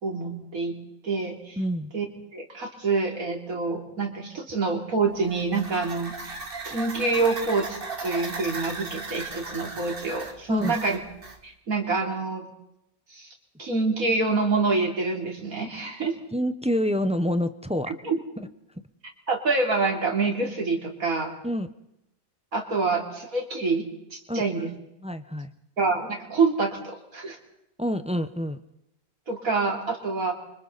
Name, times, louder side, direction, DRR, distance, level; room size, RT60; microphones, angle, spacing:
voice 1, 0.0-0.8 1.0-1.6 1.9-2.1 2.3-6.4 6.7-11.0 11.4-12.4 13.1-13.3 13.6-16.2 17.9-18.2 19.3-21.3 22.5-23.8 24.1-24.7 25.8-27.4 29.3-30.3, right 3 dB, 75° right, 1 dB, 3.7 m, -26 dB
voice 2, 1.6-1.9 10.5-10.8 16.3-17.9 21.4-21.7 24.3-24.7 25.0-25.5 27.8-28.6, equal, 5° right, 10 dB, 0.7 m, -27 dB
sound 1, 5.1-11.4, right 3 dB, 40° right, 2.1 m, -37 dB
29.0 x 25.0 x 4.1 m, 0.83 s
omnidirectional pair, 1.5 m